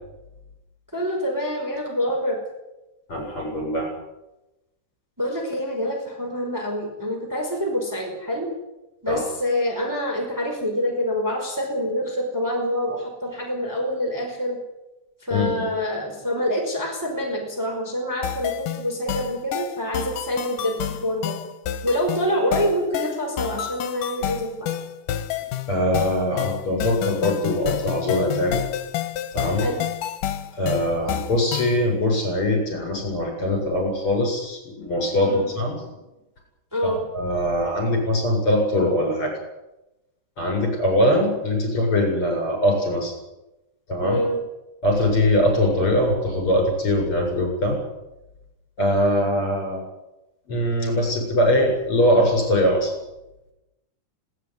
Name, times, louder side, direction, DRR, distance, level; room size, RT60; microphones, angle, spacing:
voice 1, 0.9-2.4 5.2-8.5 9.0-14.6 15.2-21.3 21.8-24.8 29.6-29.8 35.2-35.5 36.7-37.0 44.0-44.4, equal, 5° right, 0 dB, 5.1 m, -26 dB
voice 2, 3.1-3.9 9.1-9.2 15.3-15.7 25.7-28.6 29.3-29.7 30.5-35.8 36.8-39.3 40.4-43.1 43.9-44.2 44.8-47.8 48.8-49.8 50.5-52.9, left 1 dB, 40° left, 1 dB, 8.5 m, -22 dB
sound 1, 18.2-31.8, left 11 dB, 85° left, 2.7 m, -29 dB
20.0 x 18.5 x 9.8 m, 0.97 s
omnidirectional pair, 3.7 m